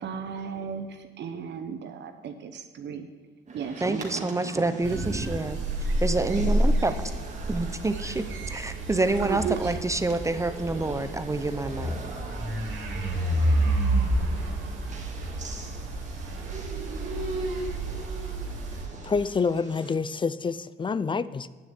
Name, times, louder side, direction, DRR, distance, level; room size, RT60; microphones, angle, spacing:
voice 1, 0.0-3.1 3.5-5.2 8.8-9.8, right 7 dB, 60° right, 6 dB, 0.8 m, -36 dB
sound 1, 3.5-19.9, right 3 dB, 40° right, 1.9 m, -45 dB
voice 2, 3.8-5.6 6.0-7.0 7.5-12.0, right 2 dB, 15° right, 10 dB, 0.6 m, -27 dB
sound 2, 4.8-18.8, right 1 dB, 80° right, 2.5 m, -29 dB
voice 3, 19.0-21.5, left 5 dB, 25° left, 17 dB, 0.4 m, -27 dB
9.4 x 6.9 x 8.2 m, 1.3 s
cardioid pair, 90°, 20 cm